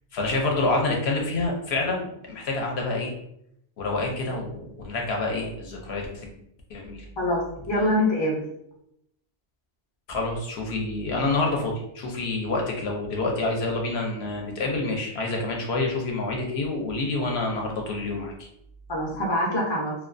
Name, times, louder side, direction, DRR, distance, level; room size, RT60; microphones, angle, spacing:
voice 1, 0.1-3.1 3.8-4.6 4.8-6.3 6.7-7.0 10.1-18.5, left 2 dB, 70° left, 0 dB, 0.8 m, -27 dB
voice 2, 7.2-8.4 18.9-19.9, left 1 dB, 35° left, -2 dB, 0.4 m, -24 dB
2.3 x 2.2 x 2.4 m, 0.76 s
omnidirectional pair, 1.2 m